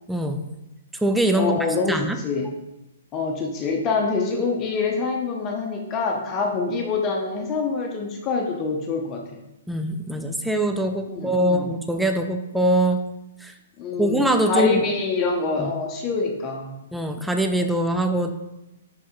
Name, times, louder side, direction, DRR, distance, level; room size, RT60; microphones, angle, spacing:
voice 1, 0.1-0.4 1.0-1.6 1.9-2.2 9.7-13.0 13.4-13.5 14.0-14.8 15.6-15.7 16.9-18.3, right 1 dB, 5° right, 5 dB, 0.5 m, -23 dB
voice 2, 1.3-2.5 3.1-9.4 11.1-11.7 13.8-16.8, left 4 dB, 30° left, 1 dB, 0.9 m, -25 dB
5.3 x 5.1 x 3.8 m, 0.95 s
figure-of-eight pair, 120°, 0 cm